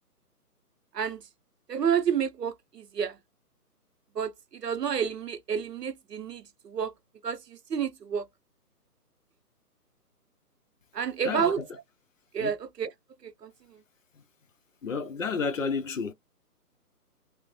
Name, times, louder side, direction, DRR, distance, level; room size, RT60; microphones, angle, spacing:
voice 1, 1.7-3.2 4.1-6.9 7.2-8.3 10.9-11.6 12.3-12.9 13.2-13.8, right 7 dB, 85° right, 0.7 m, -30 dB
voice 2, 11.2-11.7 12.4-12.5 14.8-16.1, left 5 dB, 55° left, 0.6 m, -31 dB
3.0 x 2.0 x 2.9 m
figure-of-eight pair, 145°, 47 cm